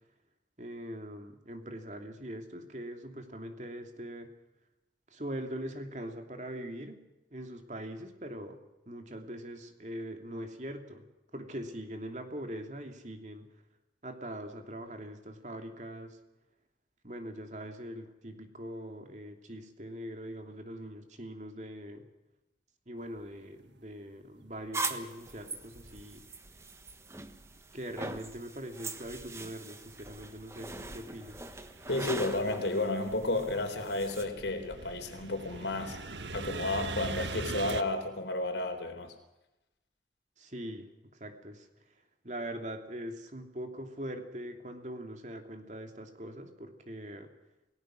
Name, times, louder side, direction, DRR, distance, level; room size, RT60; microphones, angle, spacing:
voice 1, 0.6-4.3 5.1-7.0 7.3-8.6 8.9-11.1 11.3-13.5 14.0-16.2 17.0-22.0 22.9-26.2 27.7-31.4 40.4-41.9 42.2-47.3, right 1 dB, 40° right, 5 dB, 2.7 m, -42 dB
sound 1, 24.6-24.7 25.3-26.9 27.3-28.6 29.0-37.8, right 3 dB, 80° right, 1.5 m, -43 dB
sound 2, 24.7-34.2, right 3 dB, 15° right, 1.3 m, -42 dB
voice 2, 31.9-36.0 36.3-39.1, left 2 dB, 80° left, 6 dB, 3.9 m, -32 dB
28.5 x 18.5 x 6.3 m, 0.97 s
head